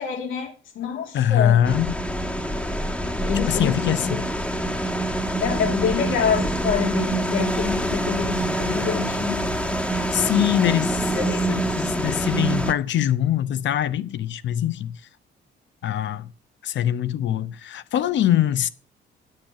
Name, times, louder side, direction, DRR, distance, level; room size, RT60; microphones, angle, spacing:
voice 1, 0.0-1.7 3.3-4.2 5.4-9.5 10.5-10.8 11.1-11.5, left 8 dB, 85° left, 2.7 m, -27 dB
voice 2, 1.1-2.0 3.5-4.2 9.9-11.0 11.5-15.0 15.8-16.3 16.6-18.7, left 11 dB, 70° left, 0.8 m, -23 dB
sound 1, 1.7-12.7, right 1 dB, 5° left, 1.3 m, -25 dB
9.9 x 6.8 x 5.8 m
cardioid pair, 90°, 20 cm